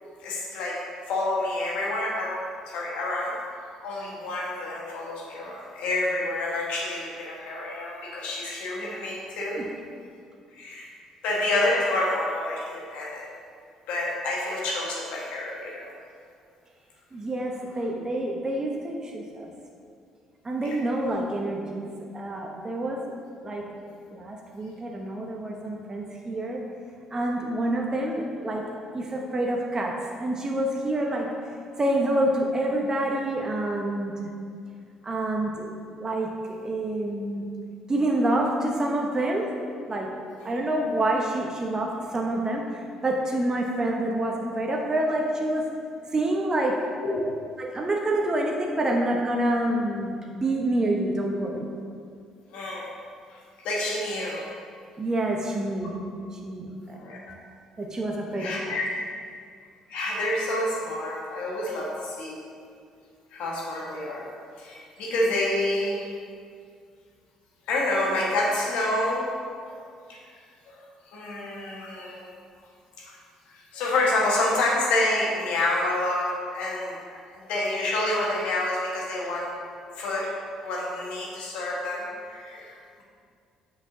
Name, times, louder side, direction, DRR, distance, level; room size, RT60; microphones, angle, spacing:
voice 1, 0.0-0.8 1.1-2.4 2.7-3.4 3.8-9.6 10.5-10.9 11.2-13.2 13.9-15.9 20.6-20.8 40.4-40.5 47.0-47.2 52.5-52.9 53.3-53.4 53.6-54.4 56.9-57.2 58.4-59.0 59.9-62.4 63.3-64.2 64.6-66.0 67.7-69.3 69.6-69.7 70.1-70.2 70.7-70.8 71.1-72.3 73.0-73.2 73.5-79.5 79.9-80.3 80.6-83.0, left 2 dB, 65° left, -3 dB, 1.4 m, -28 dB
voice 2, 17.1-19.5 20.4-21.9 22.1-23.0 23.4-23.6 24.1-26.6 27.1-28.7 28.9-31.3 31.8-34.3 35.0-35.7 36.0-37.5 37.9-39.5 39.9-40.2 40.4-45.7 46.1-46.8 47.6-51.7 55.0-56.0 56.3-57.0 57.8-58.8, right 1 dB, 30° right, 0 dB, 0.9 m, -27 dB
8.0 x 6.0 x 2.7 m, 2.3 s
hypercardioid pair, 50°, 2 cm